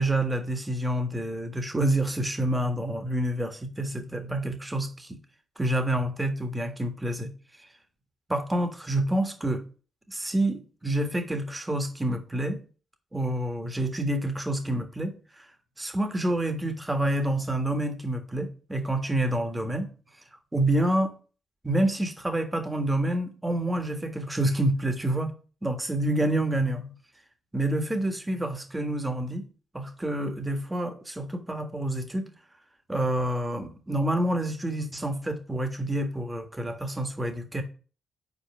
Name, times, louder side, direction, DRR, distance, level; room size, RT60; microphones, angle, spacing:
voice 1, 0.0-5.2 5.6-7.3 8.3-9.6 10.1-12.6 13.1-15.5 15.8-19.9 20.5-21.1 21.6-25.3 25.6-27.0 27.5-29.4 29.7-32.3 32.9-37.6, right 1 dB, 15° right, 1.5 m, -28 dB
5.4 x 4.4 x 6.0 m
supercardioid pair, 60°, 0 cm